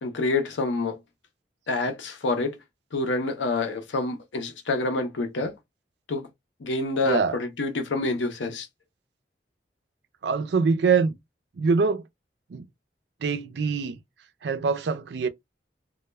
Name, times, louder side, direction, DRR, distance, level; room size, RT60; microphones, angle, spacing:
voice 1, 0.0-1.0 1.7-2.6 2.9-5.5 6.1-6.3 6.6-8.7, left 2 dB, 90° left, 0.6 m, -27 dB
voice 2, 7.0-7.4 10.2-11.1 11.6-12.0 12.5-12.6 13.2-14.0 14.4-15.3, right 5 dB, 70° right, 0.4 m, -24 dB
2.2 x 2.0 x 3.1 m
head